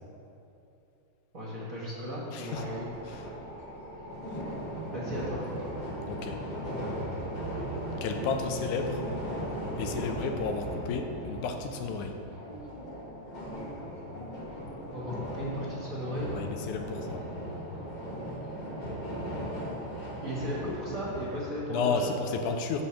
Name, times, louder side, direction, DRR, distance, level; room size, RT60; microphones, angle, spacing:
voice 1, 1.3-2.9 4.9-5.4 14.9-16.3 20.2-22.1, equal, 40° right, -5 dB, 1.4 m, -36 dB
voice 2, 2.3-2.6 3.1-3.3 6.1-6.4 8.0-9.0 9.8-12.2 16.3-17.2 21.7-22.8, left 5 dB, 90° left, 5 dB, 2.2 m, -32 dB
sound 1, 2.5-21.4, equal, 25° left, 0.9 m, -37 dB
12.0 x 4.3 x 7.4 m, 2.9 s
omnidirectional pair, 3.4 m